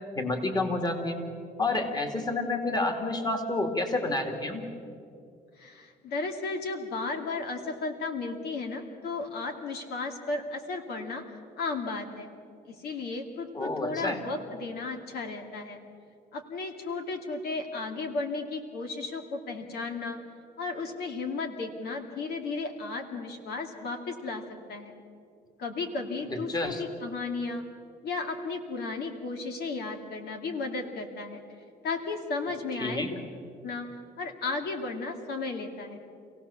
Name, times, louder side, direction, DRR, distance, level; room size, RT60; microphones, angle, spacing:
voice 1, 0.1-1.2 1.6-4.6 13.5-14.2 26.3-26.8 32.8-33.1, left 2 dB, 25° left, 5 dB, 2.6 m, -29 dB
voice 2, 5.6-11.2 11.6-12.3 12.7-15.8 16.3-20.2 20.6-24.4 24.7-24.9 25.6-27.6 28.0-31.4 31.8-33.0 33.6-33.9 34.2-36.0, left 3 dB, 70° left, 4 dB, 2.4 m, -34 dB
27.0 x 17.0 x 7.2 m, 2.4 s
cardioid pair, 110°, 17 cm